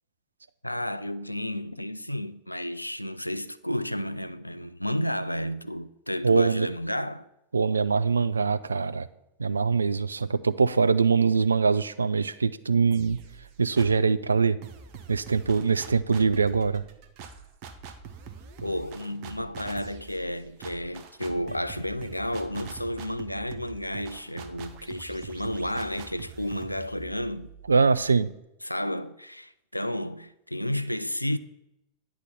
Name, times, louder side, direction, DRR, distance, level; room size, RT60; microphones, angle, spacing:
voice 1, 0.6-7.3 18.6-27.5 28.6-31.4, left 1 dB, 85° left, 0.3 m, -32 dB
voice 2, 6.2-6.7 7.5-9.1 9.4-13.2 13.6-14.6 15.1-16.8 27.7-28.3, right 5 dB, 75° right, 0.3 m, -23 dB
sound 1, 12.9-14.1 14.6-28.3, right 6 dB, 45° right, 0.7 m, -45 dB
9.6 x 3.6 x 6.9 m
figure-of-eight pair, 90°, 0 cm